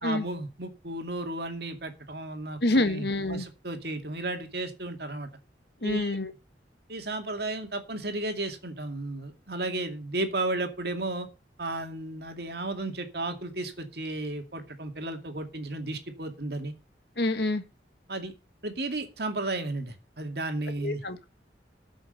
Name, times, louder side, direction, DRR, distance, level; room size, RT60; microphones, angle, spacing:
voice 1, 0.0-5.3 5.8-6.2 6.9-11.3 11.6-16.7 18.1-18.3 18.6-21.0, right 2 dB, 65° right, 2.4 m, -34 dB
voice 2, 2.6-3.4 5.8-6.3 17.2-17.6 20.8-21.3, left 2 dB, 70° left, 1.6 m, -27 dB
13.5 x 6.4 x 6.6 m
head